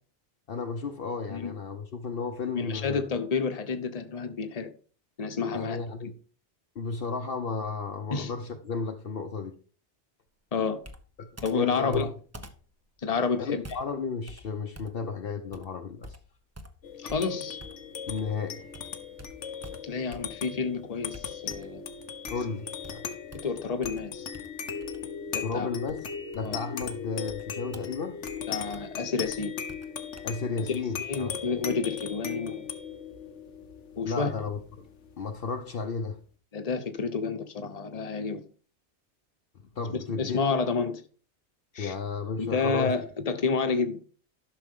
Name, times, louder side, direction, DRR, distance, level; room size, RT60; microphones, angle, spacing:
voice 1, 0.5-3.0 5.5-6.2 6.8-9.6 11.2-12.1 13.4-16.2 18.1-18.7 22.3-23.0 25.4-26.1 26.3-28.2 30.2-31.4 34.0-34.9 35.2-36.2 39.7-40.4 41.8-43.0, left 4 dB, 60° left, 0.9 m, -33 dB
voice 2, 2.5-4.7 5.2-5.8 8.1-8.3 10.5-10.8 11.4-12.1 13.0-13.6 17.0-17.6 19.8-21.8 23.4-24.3 25.3-25.7 26.4-26.6 28.5-29.5 31.1-32.7 34.0-34.3 36.5-38.4 40.2-41.0 41.7-41.9 42.4-44.0, left 5 dB, 35° left, 1.0 m, -29 dB
Computer keyboard, 10.8-18.4 18.7-20.6 21.1-21.9 22.3-30.3, equal, 15° right, 0.7 m, -49 dB
sound 1, 16.8-35.7, left 7 dB, 85° left, 1.3 m, -38 dB
12.0 x 6.3 x 3.7 m
omnidirectional pair, 1.2 m